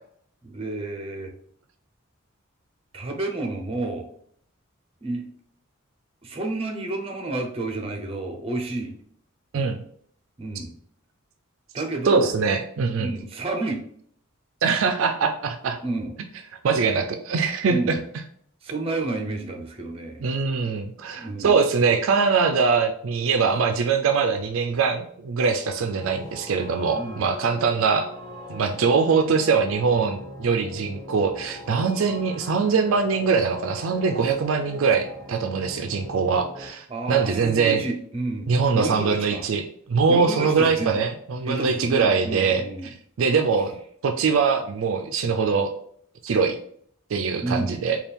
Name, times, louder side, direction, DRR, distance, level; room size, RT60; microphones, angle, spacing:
voice 1, 0.4-1.3 2.9-4.1 5.0-5.3 6.2-9.0 10.4-10.8 11.7-12.3 13.0-13.8 15.8-16.1 17.7-18.0 18.6-20.2 21.1-21.6 26.9-27.3 36.9-39.4 40.1-41.0 41.4-42.9 47.4-47.8, right 2 dB, 25° right, 2 dB, 0.6 m, -30 dB
voice 2, 12.1-13.1 14.6-15.8 16.6-18.0 20.2-28.1 28.5-37.8 38.5-39.6 39.9-42.6 43.2-43.8 44.0-45.7 46.2-46.6 47.1-48.0, right 5 dB, 70° right, 7 dB, 0.4 m, -22 dB
sound 1, 26.0-36.7, left 1 dB, 20° left, 0.8 m, -41 dB
3.5 x 2.3 x 4.2 m, 0.62 s
head